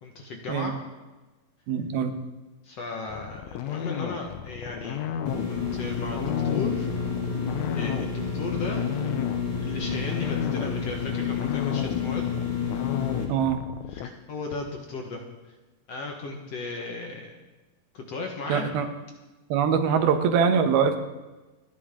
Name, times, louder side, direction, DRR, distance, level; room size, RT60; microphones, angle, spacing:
voice 1, 0.0-0.8 2.6-5.0 5.5-6.9 7.7-8.9 9.6-12.2 13.9-15.6 15.9-17.4 17.9-18.7 19.9-20.0, left 3 dB, 55° left, 1 dB, 2.1 m, -35 dB
voice 2, 1.7-2.1 13.3-13.6 18.5-18.9 19.5-21.0, right 7 dB, 85° right, 7 dB, 3.1 m, -23 dB
sound 1, 3.1-14.1, left 10 dB, 80° left, 1.7 m, -33 dB
sound 2, 5.3-13.3, left 6 dB, 40° left, 2.6 m, -30 dB
28.5 x 10.0 x 3.8 m, 1.2 s
omnidirectional pair, 4.3 m